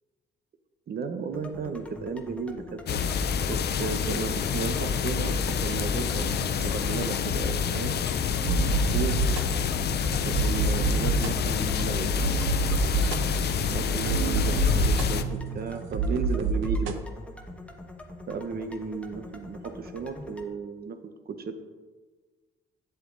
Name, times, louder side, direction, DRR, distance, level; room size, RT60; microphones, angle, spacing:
voice 1, 0.9-3.0 3.5-7.9 8.9-9.2 10.2-12.6 13.7-17.0 18.3-21.6, right 5 dB, 50° right, 9 dB, 0.9 m, -34 dB
sound 1, 1.3-20.5, left 2 dB, 5° left, 1.1 m, -44 dB
sound 2, 2.9-15.2, left 7 dB, 55° left, 0.6 m, -27 dB
sound 3, 8.4-17.0, right 5 dB, 85° right, 0.7 m, -29 dB
8.4 x 8.0 x 4.0 m, 1.4 s
cardioid pair, 90°, 20 cm